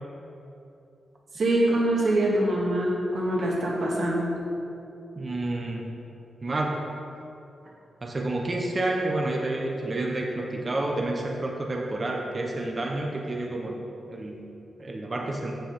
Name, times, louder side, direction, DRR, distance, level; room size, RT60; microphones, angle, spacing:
voice 1, 1.3-4.3, right 1 dB, 60° right, -5 dB, 1.8 m, -24 dB
voice 2, 5.2-5.9 6.4-6.8 8.0-13.8 14.1-14.4 14.8-15.6, right 2 dB, 25° right, 0 dB, 0.8 m, -29 dB
8.0 x 7.8 x 5.1 m, 2.7 s
wide cardioid pair, 165°, 0 cm